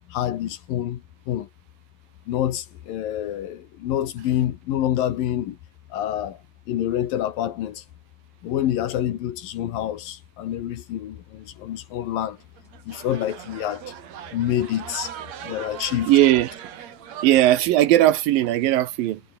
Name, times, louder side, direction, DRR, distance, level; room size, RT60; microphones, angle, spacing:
voice 1, 0.1-1.0 1.3-1.5 2.3-5.6 5.9-6.4 6.7-7.8 8.4-12.4 12.9-13.9 14.3-15.1 15.4-16.1, left 11 dB, 70° left, 3.0 m, -27 dB
sound 1, 12.4-17.6, right 9 dB, 55° right, 2.5 m, -39 dB
voice 2, 16.1-16.5 17.2-19.2, right 14 dB, 70° right, 2.5 m, -18 dB
omnidirectional pair, 4.5 m